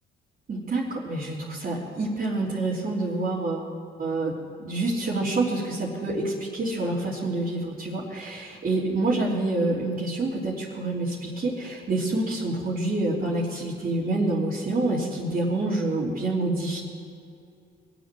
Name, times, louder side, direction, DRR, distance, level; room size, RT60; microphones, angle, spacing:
voice 1, 0.5-3.7 4.0-16.8, right 2 dB, 45° right, -8 dB, 3.4 m, -27 dB
23.0 x 8.1 x 7.6 m, 2.4 s
cardioid pair, 90°, 20 cm